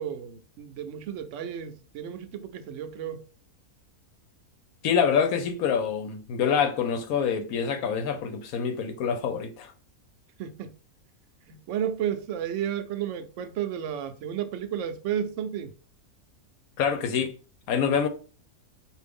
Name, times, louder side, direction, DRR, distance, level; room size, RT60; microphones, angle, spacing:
voice 1, 0.0-3.2 10.4-10.7 11.5-15.7, right 9 dB, 65° right, 0.8 m, -32 dB
voice 2, 4.8-9.7 16.8-17.3 17.7-18.1, left 7 dB, 75° left, 1.1 m, -26 dB
4.7 x 2.6 x 3.4 m
omnidirectional pair, 1.6 m